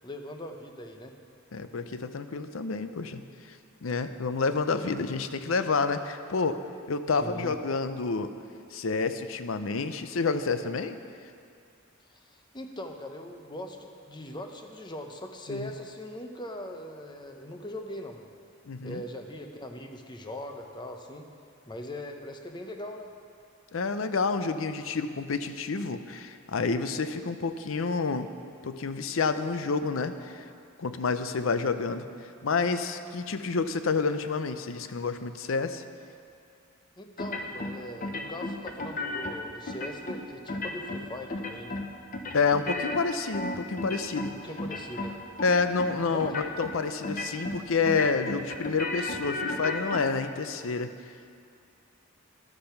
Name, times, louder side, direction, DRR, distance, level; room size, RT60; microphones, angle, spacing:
voice 1, 0.0-1.1 7.2-7.5 12.1-18.3 18.8-21.3 21.7-23.1 37.0-41.8 44.4-45.2 46.1-46.4, left 1 dB, 20° left, 4 dB, 0.8 m, -40 dB
voice 2, 1.5-6.6 6.9-8.3 8.7-11.0 15.5-15.7 18.7-19.0 23.7-28.3 28.6-30.5 30.8-35.8 42.3-44.4 45.4-50.9, left 4 dB, 70° left, 10 dB, 0.6 m, -29 dB
sound 1, 37.2-37.7 38.0-39.3 39.7-40.2 40.5-41.0 41.3-41.9 42.1-44.3 44.6-45.1 45.4-45.9 46.2-46.7 47.0-47.6 47.8-50.0, left 2 dB, 40° left, 0.9 m, -33 dB
12.0 x 8.6 x 5.9 m, 2.4 s
head